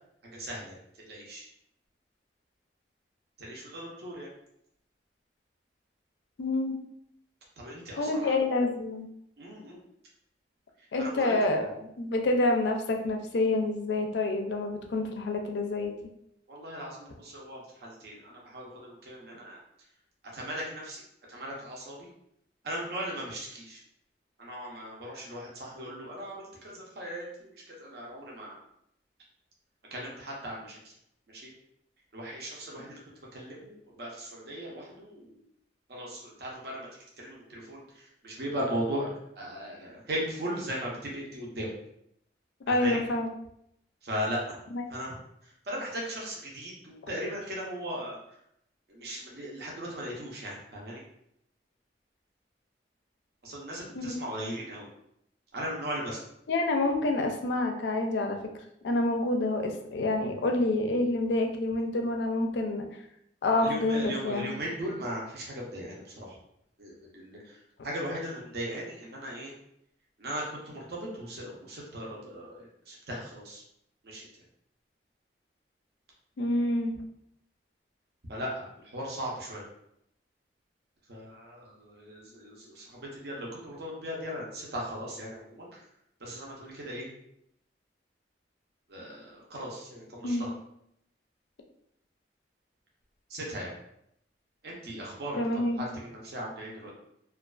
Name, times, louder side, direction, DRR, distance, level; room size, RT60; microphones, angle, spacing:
voice 1, 0.2-0.8 1.1-1.5 3.4-4.3 7.6-8.3 9.4-9.8 11.0-11.3 16.5-19.6 20.3-21.0 21.3-22.1 22.6-23.8 24.4-28.6 29.9-30.9 31.3-31.5 32.1-33.0 33.3-35.4 35.9-36.9 37.2-41.7 42.7-43.0 44.0-44.6 44.9-45.2 45.4-48.2 48.9-51.0 53.4-54.9 55.5-56.2 63.6-66.4 66.8-69.5 70.2-73.6 74.0-74.3 78.3-79.6 81.1-85.8 86.2-87.1 88.9-90.5 93.3-93.7 94.6-96.9, equal, 60° right, -3 dB, 0.6 m, -38 dB
voice 2, 6.4-6.8 8.0-9.1 10.9-15.9 42.7-43.3 44.7-44.8 54.0-54.2 56.5-58.4 58.8-62.9 63.4-64.5 76.4-77.0 90.2-90.4 95.4-95.8, left 2 dB, 75° left, 3 dB, 0.4 m, -28 dB
2.4 x 2.3 x 2.3 m, 0.75 s
head